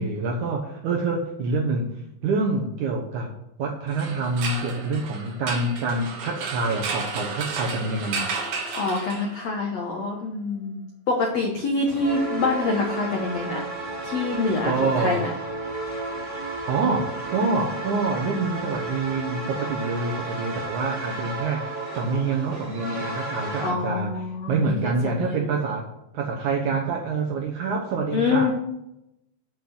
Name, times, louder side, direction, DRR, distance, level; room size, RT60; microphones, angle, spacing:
voice 1, 0.0-1.9 2.2-3.3 3.6-8.3 14.6-15.2 16.7-25.9 26.1-28.5, right 3 dB, 80° right, 0 dB, 1.7 m, -26 dB
sound 1, 3.9-9.6, right 4 dB, 60° right, 2.3 m, -32 dB
voice 2, 8.7-13.7 14.0-15.3 23.6-25.4 28.1-28.5, left 3 dB, 85° left, 0 dB, 1.5 m, -26 dB
sound 2, 11.8-23.7, right 2 dB, 25° right, 2.0 m, -33 dB
8.5 x 5.8 x 7.7 m, 0.84 s
omnidirectional pair, 5.1 m